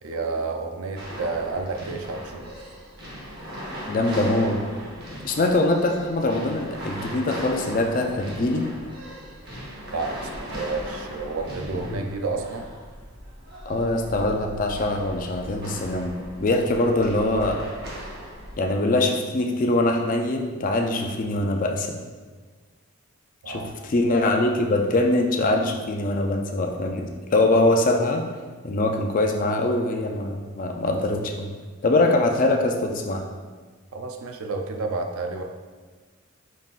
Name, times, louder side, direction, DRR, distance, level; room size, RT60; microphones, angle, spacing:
voice 1, 0.0-2.5 9.9-12.7 23.4-23.7 33.9-35.4, right 3 dB, 80° right, 3 dB, 0.5 m, -30 dB
sound 1, 1.0-18.5, equal, 45° right, 1.0 m, -38 dB
voice 2, 3.9-4.6 5.2-8.7 11.7-12.1 13.6-16.1 16.4-17.6 18.6-22.0 23.5-28.2 28.6-31.5 31.8-33.2, left 2 dB, 40° left, 3 dB, 0.4 m, -23 dB
5.2 x 3.7 x 2.4 m, 1.5 s
head